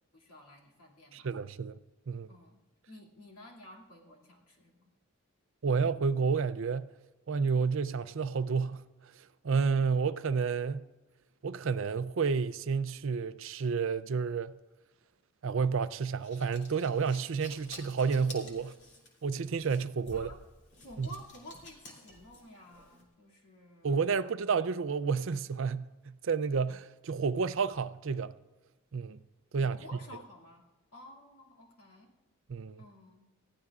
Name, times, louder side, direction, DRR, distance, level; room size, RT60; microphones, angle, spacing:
voice 1, 0.1-1.3 2.3-4.9 20.1-20.4 20.8-24.6 29.6-30.6 30.9-32.1 32.8-33.3, left 1 dB, 90° left, 2.5 m, -52 dB
voice 2, 1.1-1.8 2.1-2.3 5.6-6.9 7.3-8.9 9.4-10.9 11.4-14.6 15.4-18.8 19.2-20.3 21.0-21.1 23.8-28.4 28.9-29.2 29.5-29.8 32.5-32.8, right 5 dB, 60° right, 0.4 m, -30 dB
sound 1, 16.0-23.0, left 1 dB, 50° left, 2.7 m, -51 dB
20.0 x 14.5 x 2.4 m
head